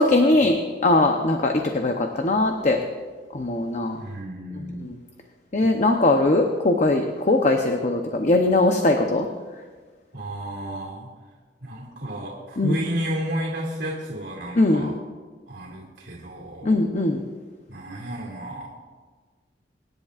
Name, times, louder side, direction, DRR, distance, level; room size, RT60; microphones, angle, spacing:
voice 1, 0.0-2.8 3.3-4.0 4.5-5.0 5.5-9.3 12.6-12.8 14.5-15.0 16.6-17.2, left 2 dB, 40° left, 3 dB, 0.8 m, -20 dB
voice 2, 4.0-4.9 10.1-11.1 11.6-14.9 15.5-16.8 17.7-18.7, right 1 dB, 85° right, -4 dB, 2.4 m, -32 dB
24.5 x 10.5 x 2.5 m, 1.4 s
head